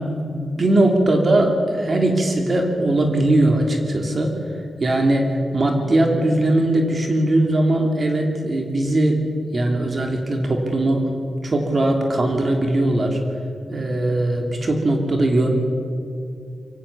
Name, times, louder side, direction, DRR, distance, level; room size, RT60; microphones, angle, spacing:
voice 1, 0.0-4.3 4.8-9.2 9.5-11.1 11.4-13.2 13.7-15.5, right 1 dB, 40° right, 3 dB, 2.9 m, -20 dB
23.5 x 17.0 x 7.3 m, 2.5 s
wide cardioid pair, 110°, 0 cm